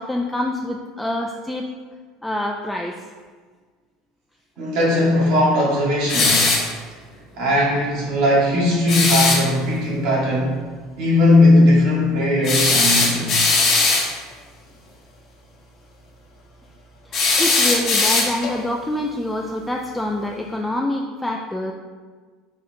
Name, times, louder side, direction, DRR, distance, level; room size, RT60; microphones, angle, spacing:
voice 1, 0.0-1.7 2.2-2.9 17.1-21.7, left 1 dB, 5° left, 0 dB, 0.3 m, -26 dB
voice 2, 4.6-6.5 7.4-10.6 11.0-13.4, left 1 dB, 70° right, -5 dB, 1.5 m, -18 dB
sound 1, 6.1-6.7 8.9-9.4 12.4-14.1 17.1-18.6, left 3 dB, 50° left, 1.0 m, -18 dB
4.1 x 2.5 x 4.3 m, 1.5 s
supercardioid pair, 100°, 0 cm